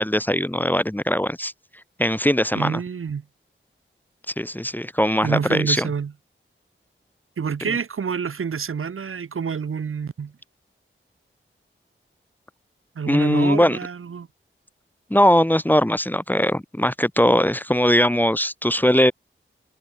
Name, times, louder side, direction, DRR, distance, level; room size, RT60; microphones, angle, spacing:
voice 1, 0.0-1.5 2.0-2.8 4.4-5.9 13.1-13.8 15.1-19.1, equal, 10° left, 0.9 m, -20 dB
voice 2, 2.5-3.2 5.2-6.1 7.4-10.3 12.9-14.3, right 6 dB, 80° right, 1.2 m, -27 dB
wide cardioid pair, 60°, 21 cm